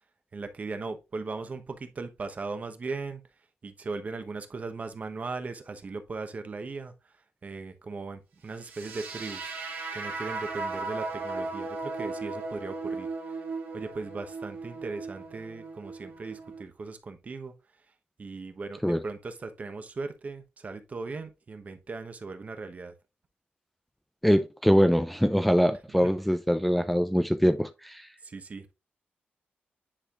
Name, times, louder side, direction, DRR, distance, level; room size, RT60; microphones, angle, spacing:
voice 1, 0.3-3.2 3.6-6.9 7.4-9.5 9.9-13.4 13.7-17.5 18.2-22.9 26.0-26.1 28.2-28.7, right 3 dB, 40° right, 1.0 m, -38 dB
sound 1, 8.6-16.6, right 3 dB, 90° right, 2.0 m, -36 dB
voice 2, 24.2-28.1, equal, ahead, 0.5 m, -23 dB
9.9 x 4.2 x 2.5 m
cardioid pair, 95°, 4 cm